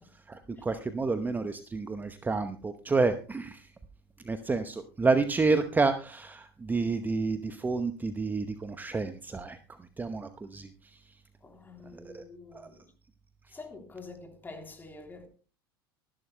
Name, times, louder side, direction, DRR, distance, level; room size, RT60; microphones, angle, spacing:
voice 1, 0.3-3.7 4.2-11.0 11.9-12.2 12.5-12.7, right 3 dB, 15° right, 0.9 m, -30 dB
voice 2, 11.4-12.8 13.5-15.3, left 3 dB, 15° left, 3.3 m, -47 dB
24.5 x 11.5 x 2.2 m
figure-of-eight pair, 75°, 13 cm